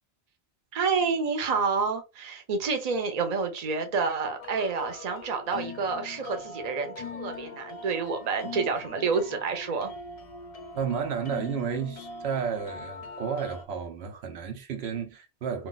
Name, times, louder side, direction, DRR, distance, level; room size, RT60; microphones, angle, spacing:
voice 1, 0.7-9.9, right 5 dB, 45° right, 0.7 m, -29 dB
sound 1, 4.4-13.6, left 4 dB, 50° left, 0.5 m, -42 dB
voice 2, 10.7-15.7, right 7 dB, 80° right, 0.9 m, -32 dB
2.4 x 2.2 x 3.9 m
omnidirectional pair, 1.1 m